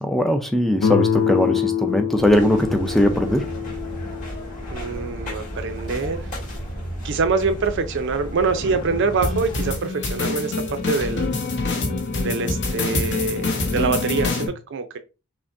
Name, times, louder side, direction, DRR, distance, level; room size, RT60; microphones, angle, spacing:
voice 1, 0.0-3.4, left 1 dB, ahead, 0.4 m, -20 dB
Guitar, 0.8-5.6, left 8 dB, 85° left, 0.4 m, -26 dB
sound 1, 2.2-9.8, equal, 40° left, 1.8 m, -33 dB
voice 2, 4.7-6.3 7.0-11.3 12.2-15.0, right 4 dB, 60° right, 0.5 m, -25 dB
sound 2, 9.2-14.5, left 3 dB, 55° left, 1.0 m, -25 dB
5.8 x 2.1 x 2.6 m
head